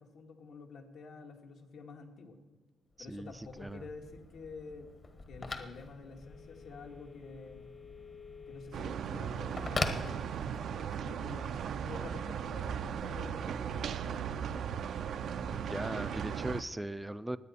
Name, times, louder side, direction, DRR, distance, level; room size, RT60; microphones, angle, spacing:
voice 1, 0.0-2.4 3.0-4.9 5.3-7.7 8.5-11.6 11.8-14.2, left 4 dB, 70° left, 2 dB, 1.9 m, -49 dB
Telephone, 3.0-10.9, left 3 dB, 40° left, 1.3 m, -42 dB
voice 2, 3.1-3.9 15.4-17.4, right 1 dB, 10° right, 14 dB, 0.4 m, -39 dB
sound 1, 8.7-16.6, right 8 dB, 65° right, 0.5 m, -37 dB
19.5 x 8.4 x 4.3 m, 1.2 s
cardioid pair, 90°, 0 cm